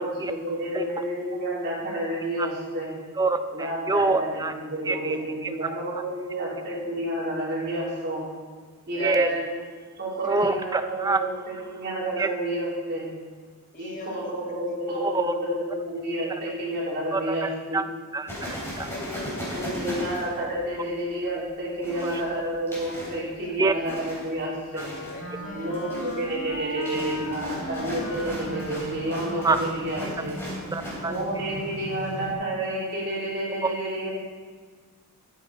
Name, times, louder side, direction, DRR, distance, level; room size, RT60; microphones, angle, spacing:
voice 1, 0.0-3.0 3.5-8.2 8.9-9.6 10.0-13.1 13.8-17.8 19.5-24.9 25.5-30.4 31.1-34.1, right 1 dB, 50° right, -6 dB, 3.1 m, -30 dB
voice 2, 3.2-4.5 4.9-5.2 5.4-5.5 9.0-9.3 10.2-11.2 12.2-12.3 15.0-15.3 17.1-17.8 18.1-18.9 22.0-22.2 23.6-23.7 29.4-29.6 30.7-31.1 33.6-33.7, right 3 dB, 15° right, 9 dB, 0.4 m, -25 dB
voice 3, 9.0-9.3 13.7-14.3 18.8-19.8 22.1-22.3 23.4-23.9 25.1-25.8 27.0-27.1, left 1 dB, 35° left, 0 dB, 1.5 m, -42 dB
sound 1, 18.3-20.9 21.8-23.2 23.9-24.4 24.8-25.2 25.6-31.2, equal, 10° left, 3.5 m, -37 dB
Wind instrument woodwind instrument, 24.6-30.0, left 2 dB, 55° left, 1.9 m, -36 dB
sound 2, 26.9-32.3, right 1 dB, 90° right, 1.3 m, -39 dB
14.0 x 8.6 x 4.0 m, 1.5 s
head